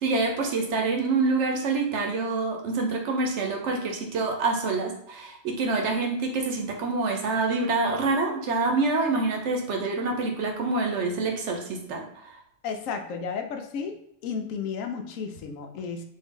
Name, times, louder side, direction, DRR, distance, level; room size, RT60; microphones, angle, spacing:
voice 1, 0.0-12.0, right 3 dB, 65° right, 2 dB, 0.9 m, -26 dB
voice 2, 12.6-14.0 14.2-16.0, left 6 dB, 80° left, 5 dB, 1.0 m, -33 dB
3.6 x 2.6 x 3.6 m, 0.74 s
omnidirectional pair, 1.4 m